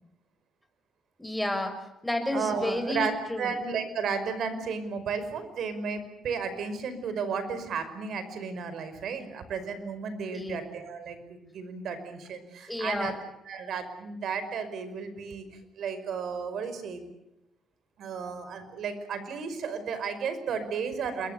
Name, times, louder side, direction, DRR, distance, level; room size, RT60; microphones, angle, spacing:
voice 1, 1.2-3.5 10.3-10.6 12.7-13.1, left 1 dB, 5° left, 6 dB, 6.2 m, -31 dB
voice 2, 2.3-3.1 3.4-13.1 13.5-15.5 15.8-17.1 18.0-21.3, right 5 dB, 70° right, 11 dB, 5.4 m, -33 dB
29.0 x 22.0 x 6.9 m, 0.86 s
cardioid pair, 90°, 0 cm